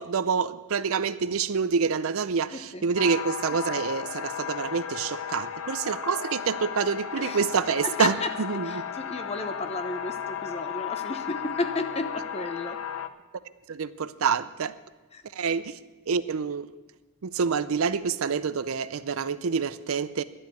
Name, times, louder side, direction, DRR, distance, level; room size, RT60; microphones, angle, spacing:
voice 1, 0.0-8.8 13.7-14.8 15.4-15.7 16.1-16.7 17.2-20.2, right 6 dB, 75° right, 15 dB, 0.5 m, -27 dB
voice 2, 2.5-2.9 7.2-7.4 7.8-12.8 15.1-15.2, left 2 dB, 30° left, 8 dB, 0.8 m, -33 dB
sound 1, 2.9-13.1, left 8 dB, 75° left, 0.7 m, -35 dB
11.5 x 7.7 x 9.1 m, 1.2 s
head